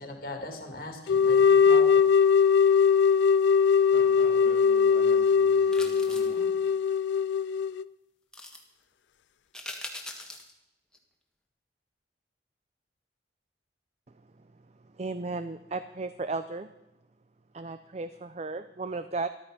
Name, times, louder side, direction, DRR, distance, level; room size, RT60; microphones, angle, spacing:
voice 1, 0.0-2.1, left 1 dB, 50° left, 4 dB, 2.5 m, -40 dB
sound 1, 1.1-7.8, left 6 dB, 75° left, 0.4 m, -21 dB
voice 2, 3.9-6.5, equal, 80° right, 0 dB, 4.7 m, -45 dB
sound 2, 5.7-6.4 8.3-8.6 9.5-10.5 10.9-11.0, left 1 dB, 5° left, 1.4 m, -41 dB
voice 3, 14.9-16.7 17.5-19.3, right 3 dB, 35° right, 11 dB, 0.5 m, -34 dB
13.5 x 13.0 x 5.2 m, 0.92 s
head